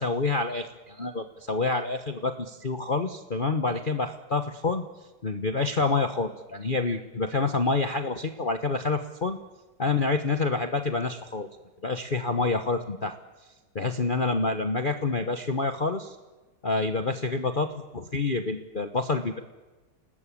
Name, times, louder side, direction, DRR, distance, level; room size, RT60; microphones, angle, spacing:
voice 1, 0.0-4.8 5.2-9.4 9.8-11.5 11.8-13.1 13.7-16.2 16.6-19.4, left 3 dB, 30° left, 6 dB, 1.1 m, -27 dB
29.0 x 19.0 x 8.6 m, 1.2 s
omnidirectional pair, 2.1 m